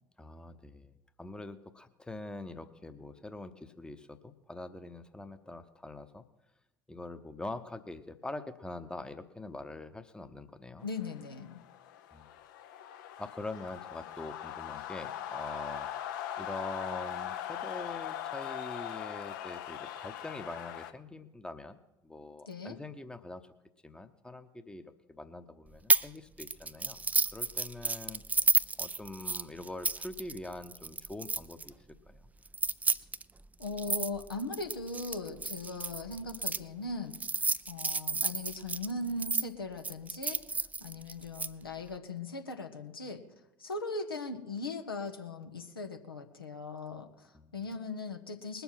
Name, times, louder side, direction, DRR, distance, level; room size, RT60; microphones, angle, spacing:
voice 1, 0.2-6.2 6.9-10.9 12.1-12.3 13.2-15.9 16.4-23.4 23.8-27.0 27.3-28.2 28.8-31.7 32.1-32.3 47.3-47.8, left 2 dB, 5° left, 10 dB, 0.9 m, -44 dB
voice 2, 10.8-11.6 22.5-22.8 33.6-43.2 43.6-48.6, left 3 dB, 80° left, 5 dB, 1.0 m, -39 dB
sound 1, 11.0-20.9, left 10 dB, 60° left, 0.8 m, -40 dB
sound 2, 25.9-26.1 26.4-31.7 32.5-36.6 37.1-39.4 39.8-41.5, right 4 dB, 15° right, 0.4 m, -31 dB
20.5 x 7.0 x 5.8 m, 0.94 s
figure-of-eight pair, 65°, 12 cm